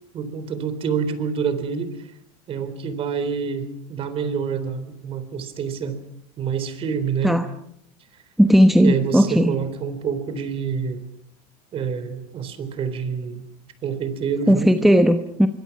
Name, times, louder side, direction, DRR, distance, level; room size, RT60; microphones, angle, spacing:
voice 1, 0.1-2.0 2.5-6.0 6.4-7.4 8.8-11.0 11.7-13.5 13.8-14.7, right 6 dB, 30° right, 11 dB, 3.8 m, -27 dB
voice 2, 8.4-9.6 14.5-15.5, equal, ahead, 7 dB, 1.0 m, -16 dB
26.0 x 24.0 x 6.0 m, 0.71 s
supercardioid pair, 150°, 18 cm